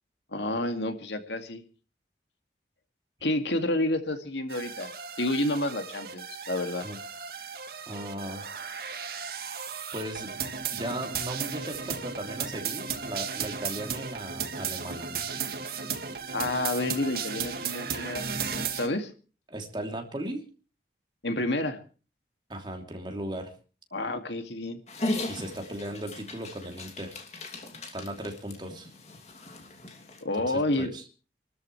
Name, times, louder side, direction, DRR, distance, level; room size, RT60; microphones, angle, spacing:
voice 1, 0.3-1.6 3.2-4.9 5.2-6.9 16.3-18.3 18.7-19.1 21.2-21.8 23.9-24.8 30.2-30.9, left 1 dB, 80° left, 7 dB, 2.2 m, -29 dB
sound 1, 4.5-18.9, right 6 dB, 55° right, 2.0 m, -35 dB
voice 2, 7.9-8.5 9.9-10.4 10.7-15.1 19.5-20.5 22.5-23.5 25.3-27.2 27.9-28.9 30.3-31.0, right 1 dB, 25° right, 3 dB, 2.9 m, -37 dB
Dog, 24.9-30.2, left 2 dB, 40° left, 2.7 m, -37 dB
28.0 x 13.5 x 3.2 m, 0.36 s
head